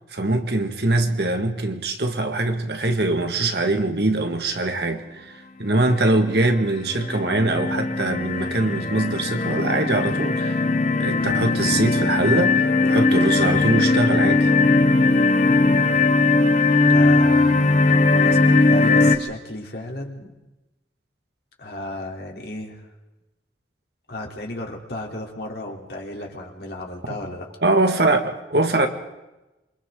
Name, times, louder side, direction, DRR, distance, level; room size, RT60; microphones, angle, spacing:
voice 1, 0.1-10.7 11.0-14.5 27.1-27.2 27.6-28.9, right 2 dB, 65° right, 1.9 m, -22 dB
sound 1, 6.0-6.4 6.9-19.2, left 3 dB, 40° left, 1.0 m, -19 dB
voice 2, 16.8-20.3 21.6-22.9 24.1-27.5, left 1 dB, 60° left, 3.5 m, -34 dB
27.5 x 24.5 x 3.9 m
head